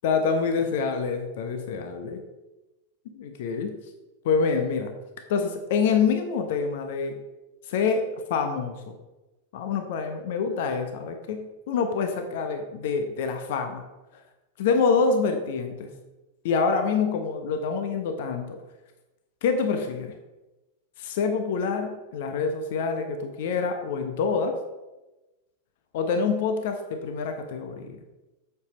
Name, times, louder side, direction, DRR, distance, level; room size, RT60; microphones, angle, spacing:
voice 1, 0.0-2.2 3.1-3.8 4.2-4.9 5.3-7.2 7.7-8.9 9.5-13.8 14.6-15.9 16.4-18.6 19.4-20.1 21.0-24.6 25.9-28.0, left 5 dB, 55° left, 6 dB, 0.9 m, -26 dB
8.3 x 6.9 x 3.9 m, 1.1 s
figure-of-eight pair, 90°, 0 cm